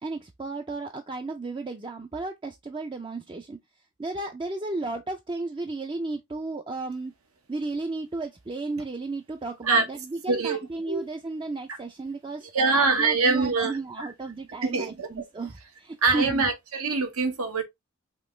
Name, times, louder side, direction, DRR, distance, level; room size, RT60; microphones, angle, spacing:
voice 1, 0.0-3.6 4.0-7.1 7.5-16.5, right 3 dB, 20° right, 0.4 m, -34 dB
voice 2, 10.3-10.6 10.9-11.1 12.5-14.1 14.6-15.1 16.0-17.6, right 4 dB, 85° right, 1.2 m, -24 dB
5.1 x 3.0 x 3.1 m
head